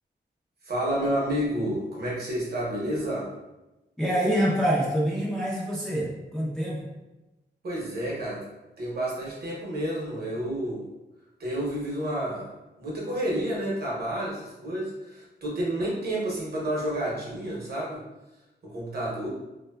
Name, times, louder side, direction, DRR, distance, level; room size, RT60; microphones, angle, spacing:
voice 1, 0.6-3.3 7.6-8.4 8.8-10.9 11.4-12.5 12.8-18.0 18.6-19.3, right 1 dB, 60° right, -4 dB, 0.8 m, -30 dB
voice 2, 4.0-6.9, equal, 5° left, -6 dB, 0.4 m, -26 dB
2.9 x 2.1 x 2.2 m, 1.0 s
wide cardioid pair, 180°, 19 cm